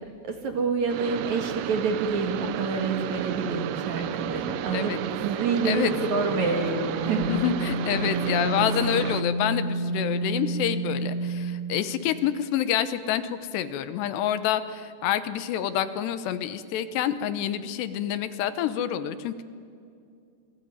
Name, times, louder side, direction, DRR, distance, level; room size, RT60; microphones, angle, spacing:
voice 1, 0.2-7.3 8.0-8.2, right 5 dB, 55° right, 4 dB, 2.5 m, -28 dB
sound 1, 0.9-9.2, right 12 dB, 85° right, 1.9 m, -32 dB
sound 2, 5.9-11.9, right 1 dB, 45° left, 4.7 m, -30 dB
voice 2, 7.1-19.4, left 10 dB, 75° left, 12 dB, 3.0 m, -27 dB
27.5 x 21.0 x 9.5 m, 2.4 s
omnidirectional pair, 5.1 m